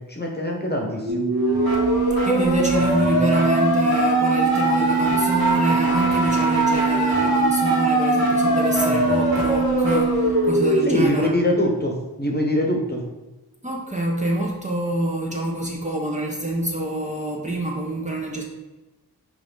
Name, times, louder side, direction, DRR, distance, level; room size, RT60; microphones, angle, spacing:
voice 1, 0.1-1.2 10.9-13.0, equal, 25° left, 1 dB, 1.2 m, -23 dB
sound 1, 1.1-11.1, right 2 dB, 65° right, 2.2 m, -20 dB
voice 2, 2.2-11.4 13.6-18.4, right 1 dB, 20° right, -2 dB, 1.0 m, -26 dB
5.9 x 4.7 x 4.0 m, 1.1 s
wide cardioid pair, 85°, 39 cm